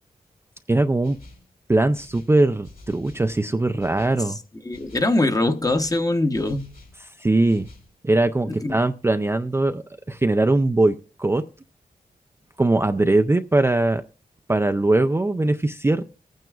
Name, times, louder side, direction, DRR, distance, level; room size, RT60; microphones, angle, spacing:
voice 1, 0.7-1.2 1.7-4.4 7.2-7.7 8.0-11.4 12.6-14.0 14.5-16.0, right 2 dB, 15° right, 0.4 m, -21 dB
sound 1, 1.0-1.5 1.9-3.3 3.8-4.2 4.7-5.2 5.6-7.0 7.5-7.9, left 2 dB, 70° left, 3.3 m, -48 dB
voice 2, 4.6-6.7 8.5-8.8, left 2 dB, 25° left, 0.9 m, -22 dB
22.5 x 9.2 x 2.3 m
cardioid pair, 75°, 15 cm